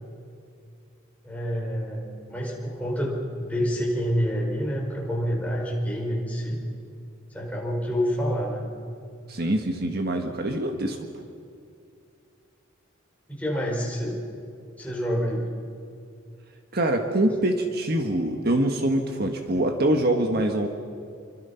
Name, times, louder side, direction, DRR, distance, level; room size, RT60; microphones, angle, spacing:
voice 1, 1.2-6.6 7.3-8.7 13.3-14.2 14.8-15.5, equal, 5° left, -2 dB, 4.9 m, -28 dB
voice 2, 9.3-11.0 16.7-20.7, right 1 dB, 50° right, 4 dB, 1.6 m, -24 dB
27.5 x 25.0 x 5.8 m, 2.5 s
head